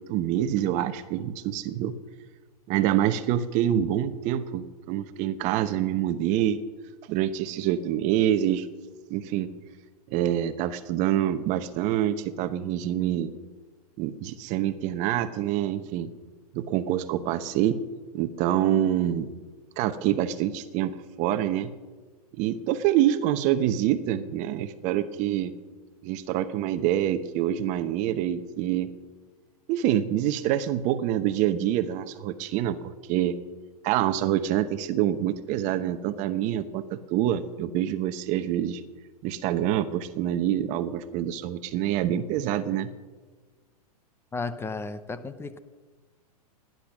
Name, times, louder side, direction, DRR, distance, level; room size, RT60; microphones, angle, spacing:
voice 1, 0.0-2.0 2.7-6.6 7.1-8.7 9.1-9.5 10.1-13.3 14.0-16.1 16.5-17.8 18.1-19.3 19.8-21.7 22.4-25.5 26.0-28.9 29.7-32.8 33.1-33.4 33.8-38.8 39.2-42.9, right 11 dB, 40° right, 12 dB, 0.9 m, -26 dB
voice 2, 44.3-45.6, left 3 dB, 10° left, 12 dB, 0.8 m, -34 dB
17.5 x 10.5 x 6.2 m, 1.4 s
hypercardioid pair, 120°, 20 cm